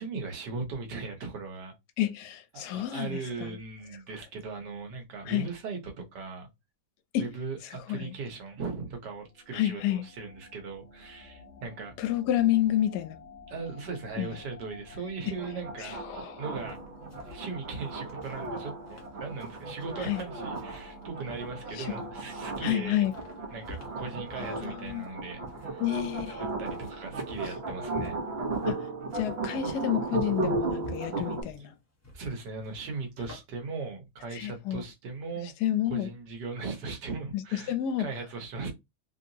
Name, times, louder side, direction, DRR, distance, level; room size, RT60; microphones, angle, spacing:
voice 1, 0.0-1.7 2.5-6.5 7.2-11.9 13.5-15.9 16.4-16.8 17.3-23.0 23.5-25.8 26.4-28.2 32.1-35.5 35.8-38.7, right 4 dB, 85° right, 1.6 m, -38 dB
voice 2, 2.0-3.5 5.3-5.5 7.1-7.3 7.9-8.1 9.5-10.0 12.0-13.2 14.2-14.3 15.3-15.4 15.8-16.4 20.0-20.2 21.8-22.0 22.6-23.1 24.4-25.0 25.8-26.4 28.6-31.7 34.3-34.8 35.6-36.1 37.3-38.1, left 12 dB, 80° left, 1.1 m, -30 dB
sound 1, 9.0-27.9, left 3 dB, 45° left, 1.3 m, -51 dB
sound 2, 15.4-31.4, right 3 dB, 45° right, 0.9 m, -36 dB
sound 3, 16.7-33.4, equal, 15° left, 0.7 m, -50 dB
3.4 x 2.8 x 2.7 m
omnidirectional pair, 1.8 m